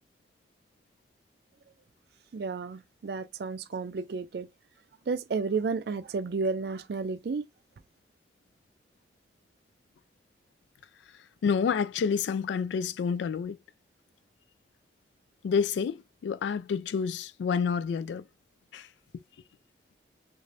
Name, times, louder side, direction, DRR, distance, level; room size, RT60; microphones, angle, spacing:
voice 1, 2.3-4.5 5.1-7.4, right 4 dB, 60° right, 0.4 m, -32 dB
voice 2, 11.4-13.6 15.4-18.2 18.7-18.9, left 6 dB, 85° left, 0.3 m, -28 dB
3.2 x 2.5 x 2.6 m
head